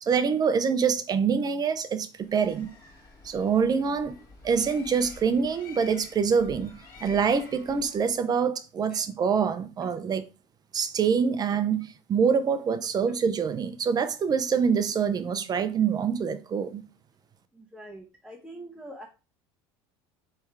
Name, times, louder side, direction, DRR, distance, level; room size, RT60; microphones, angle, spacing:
voice 1, 0.0-2.7 3.2-10.3 10.7-16.9, right 6 dB, 30° right, 0.6 m, -25 dB
Bird, 2.2-8.2, left 4 dB, 30° left, 2.0 m, -49 dB
voice 2, 17.5-19.1, right 1 dB, ahead, 0.9 m, -44 dB
3.5 x 3.3 x 4.6 m
supercardioid pair, 105°, 13 cm